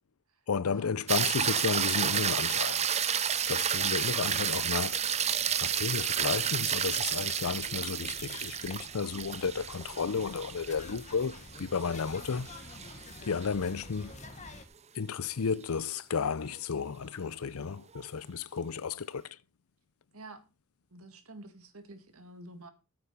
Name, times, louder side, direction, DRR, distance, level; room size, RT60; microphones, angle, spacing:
voice 1, 0.5-2.9 3.5-5.1 5.6-12.5 13.3-14.1 14.9-19.4, left 5 dB, 70° left, 0.6 m, -33 dB
sound 1, 1.1-13.5 18.0-18.1, right 8 dB, 30° right, 0.6 m, -31 dB
sound 2, 2.8-14.6, left 3 dB, 35° left, 1.6 m, -50 dB
voice 2, 20.1-20.5 20.9-22.7, right 2 dB, 70° right, 2.0 m, -49 dB
8.9 x 8.6 x 5.7 m
head